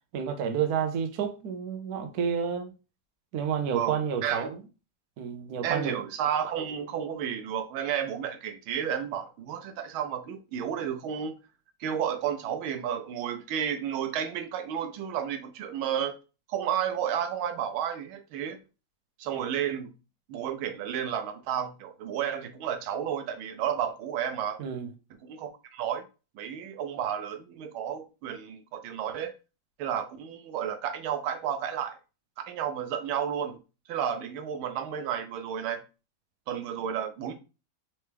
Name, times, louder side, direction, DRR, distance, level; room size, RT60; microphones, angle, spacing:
voice 1, 0.1-2.7 3.3-4.6 5.2-6.0 24.6-24.9, right 7 dB, 65° right, 1.0 m, -30 dB
voice 2, 3.7-4.5 5.6-11.3 11.8-16.2 16.5-18.6 19.2-19.9 20.3-24.6 25.2-26.0 26.3-29.3 29.8-32.0 32.4-33.6 33.9-35.8 36.5-37.3, right 9 dB, 85° right, 1.5 m, -32 dB
4.4 x 3.0 x 3.3 m
omnidirectional pair, 2.2 m